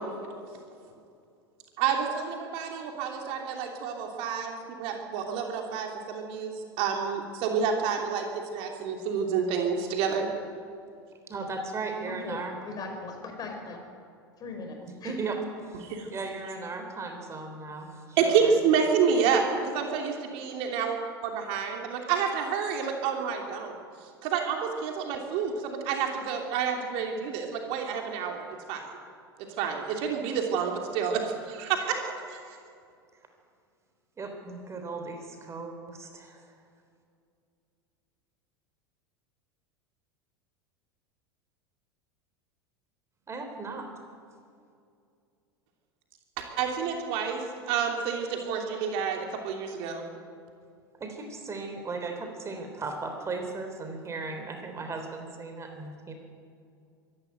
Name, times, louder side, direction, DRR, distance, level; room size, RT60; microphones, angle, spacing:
voice 1, 1.8-10.3 15.8-16.1 18.2-21.0 21.2-23.7 24.2-28.8 29.6-32.4 46.6-50.0, right 6 dB, 50° right, 2 dB, 3.0 m, -29 dB
voice 2, 11.3-12.5 14.8-18.6 34.2-36.4 43.3-43.9 51.0-56.1, right 3 dB, 20° right, 5 dB, 3.5 m, -37 dB
voice 3, 12.1-13.8 14.4-15.2, left 3 dB, 30° left, 4 dB, 5.0 m, -39 dB
25.0 x 12.0 x 9.3 m, 2.4 s
figure-of-eight pair, 80°, 13 cm